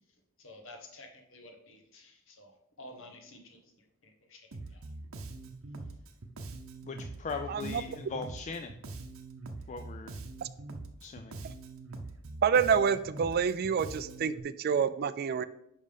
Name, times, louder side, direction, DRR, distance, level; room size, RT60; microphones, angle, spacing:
voice 1, 0.4-2.5 2.8-3.6 4.3-4.4, left 1 dB, 65° left, 4 dB, 1.2 m, -50 dB
Bass guitar, 4.5-14.4, right 2 dB, 70° right, 0.7 m, -43 dB
voice 2, 6.8-8.7 9.7-10.1 11.0-11.4, left 4 dB, 35° left, 6 dB, 0.3 m, -39 dB
voice 3, 7.5-7.8 10.4-10.5 12.4-15.4, right 6 dB, 45° right, 14 dB, 0.3 m, -28 dB
5.3 x 5.3 x 5.2 m, 0.78 s
head